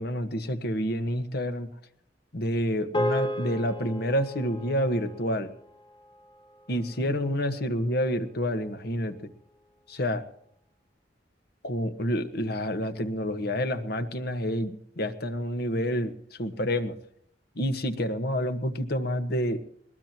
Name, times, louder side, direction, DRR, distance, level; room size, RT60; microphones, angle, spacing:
voice 1, 0.0-1.7 2.3-5.5 6.7-9.3 9.9-10.2 11.6-16.9 17.5-19.6, equal, 65° left, 8 dB, 1.5 m, -28 dB
sound 1, 2.9-7.5, left 1 dB, 30° left, 0.8 m, -35 dB
21.5 x 20.0 x 3.0 m, 0.64 s
head